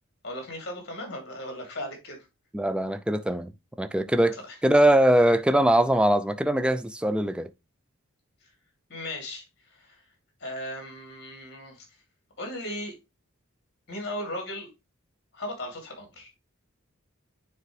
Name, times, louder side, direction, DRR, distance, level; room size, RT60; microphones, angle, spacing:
voice 1, 0.2-2.2 4.5-4.6 8.4-8.5 8.9-10.0 10.4-11.8 12.4-12.9 13.9-14.7 15.3-16.3, left 1 dB, 55° left, 2.7 m, -37 dB
voice 2, 2.5-3.5 3.8-7.5, right 1 dB, 5° right, 0.3 m, -22 dB
9.4 x 3.5 x 3.2 m
head